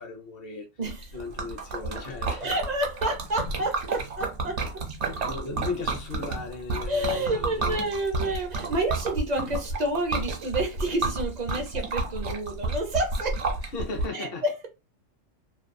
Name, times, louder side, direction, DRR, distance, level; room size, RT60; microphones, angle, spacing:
voice 1, 0.0-0.7 1.1-2.5 5.2-7.9 13.6-14.4, left 4 dB, 55° left, 0.8 m, -36 dB
Liquid, 0.9-14.1, right 3 dB, 65° right, 1.0 m, -31 dB
voice 2, 2.4-4.7 6.9-13.4 14.1-14.7, right 1 dB, 45° right, 0.5 m, -29 dB
2.5 x 2.2 x 2.5 m
omnidirectional pair, 1.3 m